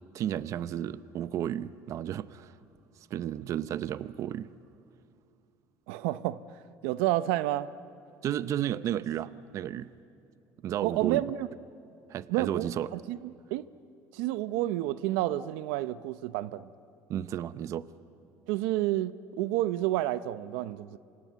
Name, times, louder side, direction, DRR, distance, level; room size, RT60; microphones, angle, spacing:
voice 1, 0.1-2.5 3.1-4.5 8.2-9.9 10.6-11.2 12.1-12.9 17.1-17.9, right 11 dB, 45° right, 0.7 m, -33 dB
voice 2, 5.9-7.7 10.8-11.5 12.3-13.2 13.5-13.6 14.1-16.7 18.5-21.0, right 15 dB, 90° right, 0.7 m, -30 dB
28.0 x 26.0 x 8.2 m
cardioid pair, 130°, 7 cm